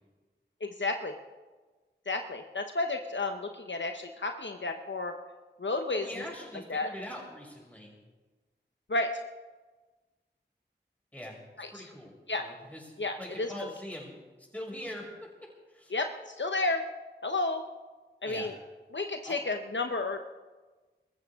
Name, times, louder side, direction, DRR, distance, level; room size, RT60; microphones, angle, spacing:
voice 1, 0.6-1.2 2.1-5.1 5.6-6.1 6.7-6.9 8.9-9.1 11.6-11.8 12.3-12.5 13.0-13.7 15.9-16.8 17.2-17.6 18.2-18.5 18.9-20.2, left 2 dB, 70° left, 5 dB, 0.9 m, -32 dB
voice 2, 5.9-8.0 11.1-11.4 11.7-12.1 12.4-12.9 13.2-14.1 14.5-15.2 15.7-15.9 18.2-18.5 19.2-19.4, left 1 dB, 10° left, -2 dB, 6.1 m, -42 dB
25.0 x 14.0 x 3.6 m, 1.3 s
wide cardioid pair, 45°, 20 cm